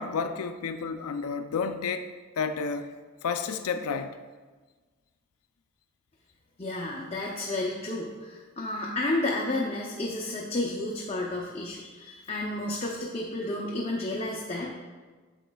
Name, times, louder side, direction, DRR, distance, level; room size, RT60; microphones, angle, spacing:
voice 1, 0.0-2.1 2.4-2.9 3.2-4.2, left 5 dB, 85° left, 8 dB, 0.4 m, -31 dB
voice 2, 6.6-14.7, left 2 dB, 30° left, -2 dB, 0.6 m, -31 dB
8.9 x 7.1 x 2.3 m, 1.3 s
head